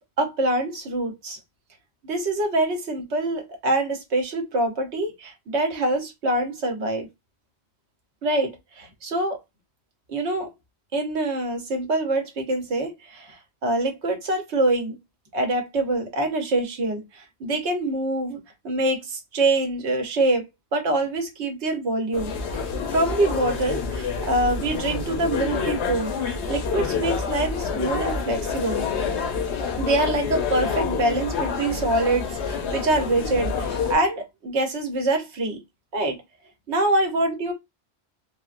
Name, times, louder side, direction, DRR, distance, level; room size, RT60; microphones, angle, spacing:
voice 1, 0.2-1.4 2.0-7.1 8.2-9.4 10.1-10.5 10.9-14.9 15.3-20.5 20.7-22.6 22.9-26.1 26.5-28.8 29.8-35.6 35.9-36.2 36.7-37.5, right 2 dB, 90° right, 1.2 m, -25 dB
sound 1, 22.1-34.0, left 5 dB, 85° left, 0.9 m, -28 dB
3.4 x 2.1 x 2.4 m
omnidirectional pair, 1.1 m